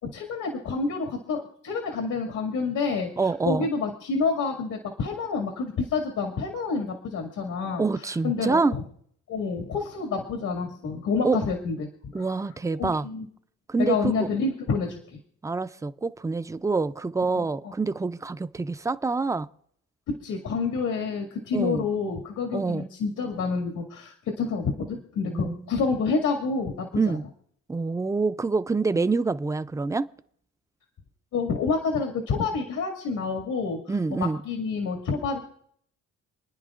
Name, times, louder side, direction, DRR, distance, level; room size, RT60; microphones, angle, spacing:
voice 1, 0.0-8.8 9.3-11.9 12.8-13.3 13.8-15.2 17.3-17.7 20.1-26.9 31.3-33.8 34.4-35.4, left 4 dB, 80° left, 2.2 m, -28 dB
voice 2, 3.2-3.7 7.8-8.8 11.2-11.4 12.1-13.1 13.7-14.3 15.4-19.5 21.5-21.9 22.5-22.8 25.3-25.7 27.0-27.2 27.7-30.1 33.9-34.4, right 4 dB, 10° right, 0.5 m, -26 dB
29.0 x 10.0 x 2.5 m
cardioid pair, 90°, 30 cm